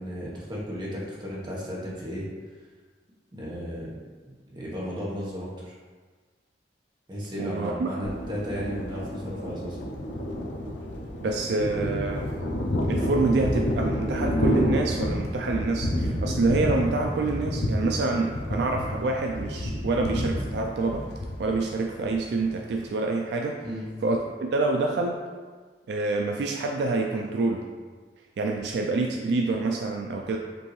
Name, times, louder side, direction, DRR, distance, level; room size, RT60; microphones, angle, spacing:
voice 1, 0.0-2.2 3.3-3.9 4.2-5.7 7.1-9.8 23.6-23.9, equal, 25° right, -6 dB, 1.0 m, -34 dB
voice 2, 7.4-7.9 10.6-10.9 11.2-12.3 12.9-21.1 21.4-23.6 24.0-25.2 25.9-27.6 28.4-30.4, right 3 dB, 65° right, 2 dB, 0.3 m, -27 dB
Thunder, 8.0-22.8, equal, 75° left, 0.5 m, -29 dB
5.1 x 2.7 x 3.1 m, 1.4 s
head